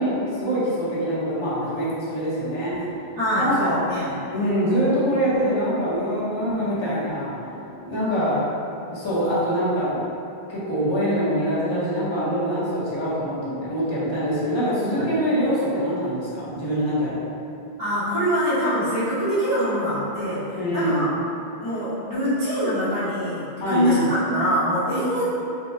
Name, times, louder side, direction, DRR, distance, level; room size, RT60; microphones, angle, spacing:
voice 1, 0.0-2.8 3.4-3.7 4.3-7.3 7.9-8.4 8.9-10.0 10.5-17.2 20.5-21.2 23.6-24.1, equal, 30° left, -9 dB, 0.7 m, -24 dB
sound 1, 2.2-8.1, equal, 80° left, 1.2 m, -43 dB
voice 2, 3.2-4.1 14.9-15.0 17.8-21.1 21.6-25.2, equal, 20° right, -12 dB, 0.7 m, -24 dB
3.6 x 2.1 x 2.6 m, 2.7 s
omnidirectional pair, 1.1 m